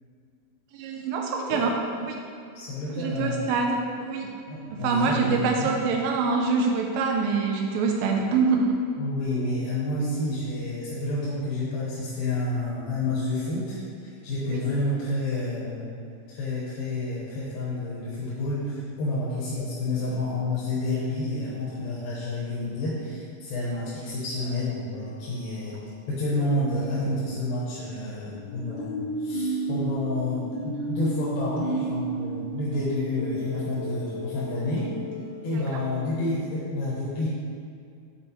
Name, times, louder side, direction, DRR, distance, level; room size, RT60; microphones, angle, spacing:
voice 1, 0.7-1.7 2.1-2.2 2.9-4.3 4.7-8.8 14.5-14.6 35.7-35.8, right 4 dB, 85° right, 1 dB, 2.3 m, -25 dB
voice 2, 2.5-3.4 4.5-5.7 9.0-15.9 16.3-25.8 26.1-34.9 35.4-37.3, left 2 dB, 85° left, -8 dB, 3.0 m, -29 dB
sound 1, 24.9-25.8 28.3-36.1, right 2 dB, 60° left, 1.8 m, -34 dB
7.4 x 4.4 x 4.4 m, 2.3 s
omnidirectional pair, 4.1 m